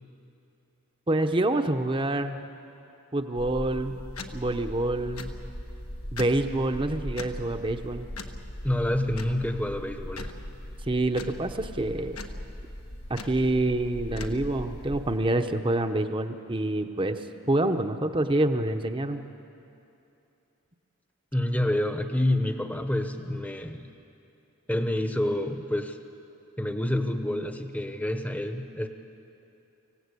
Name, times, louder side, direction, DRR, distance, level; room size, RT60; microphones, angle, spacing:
voice 1, 1.1-2.4 3.1-4.0 4.3-5.3 6.1-8.1 10.9-12.2 13.1-19.3, right 1 dB, 25° right, 7 dB, 0.8 m, -27 dB
sound 1, 3.3-15.2, left 1 dB, 85° left, 1.3 m, -39 dB
voice 2, 8.6-10.3 21.3-23.9 24.7-26.0 26.6-28.9, left 1 dB, 5° left, 7 dB, 0.9 m, -28 dB
25.5 x 16.5 x 8.4 m, 2.8 s
head